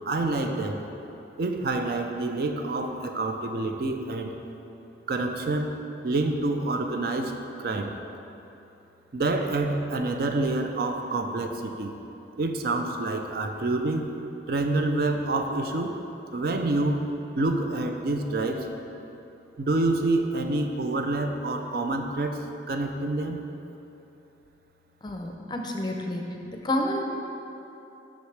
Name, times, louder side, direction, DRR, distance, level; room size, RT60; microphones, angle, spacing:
voice 1, 0.1-0.8 1.4-4.4 5.1-5.7 6.0-7.9 9.1-11.9 12.4-14.2 14.5-16.0 16.3-17.1 17.4-18.7 19.6-23.4, right 2 dB, 55° right, 5 dB, 0.4 m, -27 dB
voice 2, 25.0-27.1, left 1 dB, 25° left, 2 dB, 0.5 m, -30 dB
8.0 x 6.3 x 3.3 m, 3.0 s
head